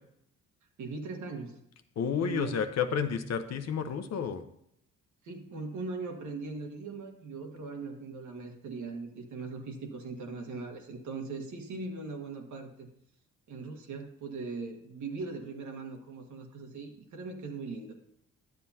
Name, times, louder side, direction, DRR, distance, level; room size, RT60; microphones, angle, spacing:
voice 1, 0.8-1.6 2.2-2.6 5.2-12.9 13.5-17.9, right 4 dB, 75° right, 3 dB, 1.5 m, -40 dB
voice 2, 2.0-4.4, left 7 dB, 60° left, 9 dB, 0.8 m, -31 dB
10.5 x 7.6 x 2.8 m, 0.74 s
cardioid pair, 90°, 30 cm